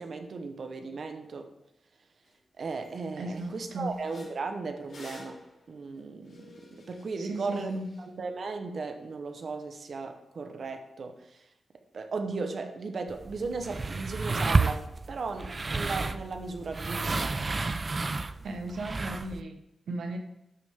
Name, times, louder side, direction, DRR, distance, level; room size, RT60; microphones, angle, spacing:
voice 1, 0.0-1.5 2.6-11.5 11.9-17.4, right 4 dB, 60° right, 7 dB, 1.0 m, -36 dB
sound 1, 2.3-2.4 2.7-2.9 3.3-8.0, left 3 dB, 90° left, 4.1 m, -51 dB
voice 2, 3.2-3.9 7.2-7.9 18.4-20.2, right 1 dB, 90° right, 5 dB, 1.1 m, -36 dB
sound 2, 13.1-19.4, right 3 dB, 35° right, 0.4 m, -31 dB
12.0 x 6.4 x 3.7 m, 0.84 s
wide cardioid pair, 125°, 0 cm